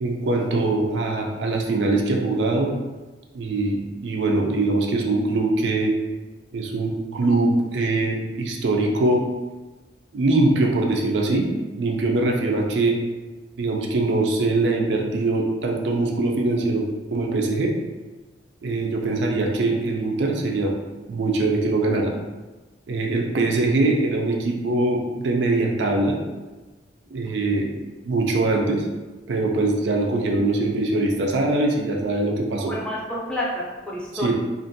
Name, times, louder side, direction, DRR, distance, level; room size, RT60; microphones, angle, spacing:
voice 1, 0.0-2.7 3.3-5.9 6.5-9.2 10.1-11.5 11.8-13.0 13.6-16.8 17.1-17.7 18.6-20.7 21.1-22.1 22.9-26.2 27.1-27.7 28.0-28.9 29.3-32.7 34.1-34.3, right 2 dB, 75° right, 0 dB, 0.4 m, -22 dB
voice 2, 32.7-34.3, left 1 dB, 5° left, -5 dB, 0.4 m, -29 dB
2.5 x 2.1 x 2.6 m, 1.2 s
head